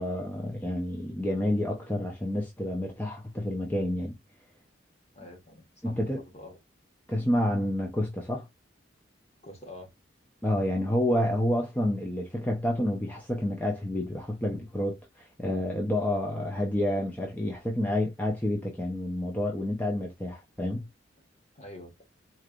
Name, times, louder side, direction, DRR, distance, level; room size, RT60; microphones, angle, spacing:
voice 1, 0.0-4.1 5.8-6.2 7.1-8.5 10.4-20.9, left 1 dB, 10° left, 0.8 m, -29 dB
voice 2, 5.1-6.6 9.4-9.9 21.5-22.0, left 1 dB, 35° left, 1.6 m, -46 dB
4.4 x 3.3 x 2.5 m
head